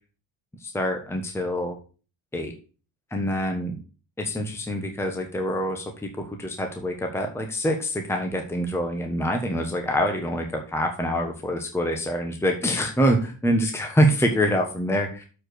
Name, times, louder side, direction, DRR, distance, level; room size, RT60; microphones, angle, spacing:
voice 1, 0.6-1.8 2.3-2.5 3.1-3.8 4.2-15.2, equal, 5° left, 3 dB, 1.2 m, -25 dB
7.3 x 4.9 x 6.5 m, 0.37 s
cardioid pair, 115°, 48 cm